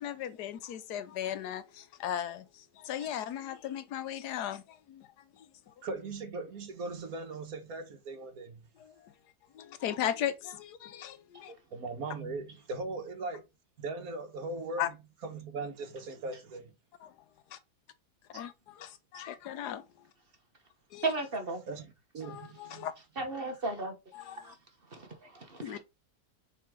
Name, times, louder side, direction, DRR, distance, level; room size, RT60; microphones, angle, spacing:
voice 1, 0.0-5.1 5.4-5.7 8.8-9.1 9.5-11.5 14.8-14.9 17.0-17.1 17.5-17.6 18.3-19.8 20.9-21.1 22.2-22.9 24.1-24.5 25.6-25.8, left 10 dB, 85° left, 1.3 m, -37 dB
voice 2, 5.8-8.7 11.7-13.5 13.8-15.0 15.2-16.7 21.7-22.9, right 3 dB, 65° right, 1.7 m, -39 dB
voice 3, 21.0-21.6 23.2-23.9 24.4-24.5 24.9-25.8, right 3 dB, 40° right, 1.2 m, -34 dB
5.8 x 4.6 x 3.7 m
omnidirectional pair, 1.7 m